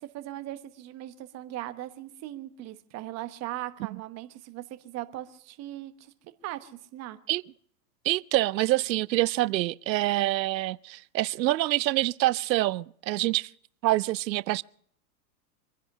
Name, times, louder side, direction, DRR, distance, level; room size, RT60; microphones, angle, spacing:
voice 1, 0.0-6.1 6.4-7.2, right 14 dB, 30° right, 1.2 m, -39 dB
voice 2, 8.0-13.5 13.8-14.6, right 16 dB, 90° right, 0.6 m, -26 dB
25.0 x 10.5 x 5.5 m
hypercardioid pair, 135°, 50 cm